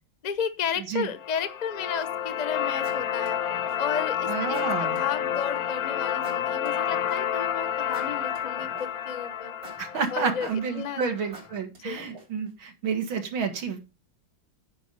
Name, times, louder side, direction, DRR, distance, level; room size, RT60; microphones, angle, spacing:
voice 1, 0.2-3.4 3.8-9.5 10.1-10.5 10.7-11.1 11.8-12.0, left 7 dB, 35° left, 12 dB, 0.7 m, -33 dB
sound 1, 1.2-11.2, left 9 dB, 60° left, 1.0 m, -30 dB
sound 2, 2.0-2.3 2.8-4.0 4.5-5.5 6.2-7.4 7.9-9.1 9.6-10.8 11.3-12.5, right 2 dB, 70° right, 4.1 m, -47 dB
voice 2, 4.3-5.0 9.8-13.8, right 6 dB, 90° right, 6 dB, 2.5 m, -30 dB
9.9 x 5.0 x 6.7 m, 0.29 s
omnidirectional pair, 2.1 m